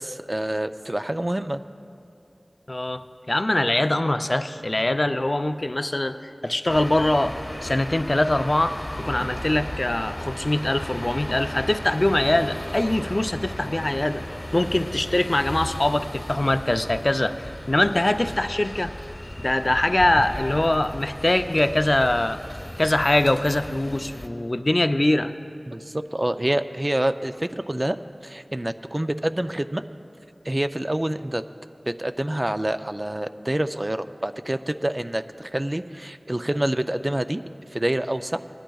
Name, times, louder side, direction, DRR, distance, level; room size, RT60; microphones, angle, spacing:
voice 1, 0.0-1.6 25.7-29.8 30.5-31.4 31.9-37.4 37.7-38.4, right 1 dB, 35° right, 10 dB, 0.4 m, -27 dB
voice 2, 2.7-6.2 6.4-14.2 14.5-18.9 19.4-22.4 22.8-25.3, left 1 dB, 45° left, 9 dB, 0.4 m, -23 dB
sound 1, 6.7-24.3, left 1 dB, 20° left, 1.1 m, -36 dB
19.5 x 11.5 x 2.3 m, 2.6 s
wide cardioid pair, 45°, 0 cm